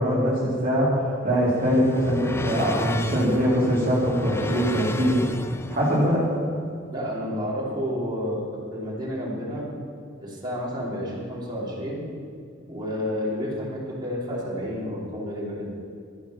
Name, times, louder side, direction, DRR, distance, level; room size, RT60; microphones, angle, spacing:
voice 1, 0.0-5.2 5.7-6.3, equal, 45° right, -6 dB, 2.6 m, -22 dB
sound 1, 1.1-6.1, left 2 dB, 15° left, 0.4 m, -34 dB
voice 2, 6.9-8.4 8.7-9.7 10.2-12.0 12.7-15.7, equal, 25° right, -6 dB, 3.1 m, -30 dB
12.5 x 9.6 x 5.7 m, 2.3 s
head